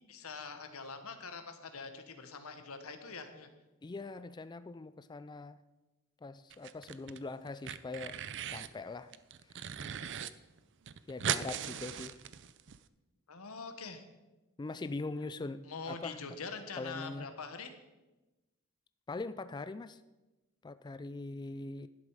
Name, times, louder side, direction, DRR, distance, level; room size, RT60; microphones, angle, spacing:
voice 1, 0.1-3.5 13.3-14.0 15.7-17.7, left 4 dB, 80° left, 7 dB, 1.4 m, -44 dB
voice 2, 3.8-5.6 6.2-8.2 8.5-9.1 11.1-12.2 14.6-16.2 16.8-17.3 19.1-20.0 20.6-21.9, left 3 dB, 20° left, 13 dB, 0.3 m, -42 dB
sound 1, 6.5-7.2 7.5-8.7 9.1-10.3 10.6-10.7 10.9-12.8, right 9 dB, 55° right, 0.5 m, -38 dB
12.0 x 10.5 x 5.0 m, 1.1 s
head